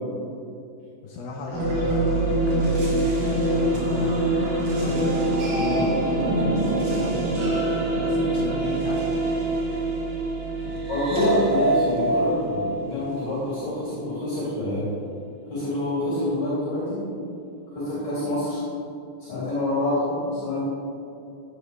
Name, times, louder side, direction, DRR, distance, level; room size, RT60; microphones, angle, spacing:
voice 1, 1.0-4.4 4.7-5.8 6.2-7.6 8.0-9.4 10.6-10.8 11.2-11.4, left 2 dB, 75° left, 0 dB, 2.2 m, -36 dB
sound 1, 1.5-13.6, right 1 dB, 90° right, 5.0 m, -24 dB
voice 2, 10.9-14.8 15.5-17.0 17.7-18.6 19.3-20.6, left 1 dB, 50° left, -9 dB, 4.3 m, -26 dB
15.5 x 9.9 x 3.4 m, 2.6 s
omnidirectional pair, 5.1 m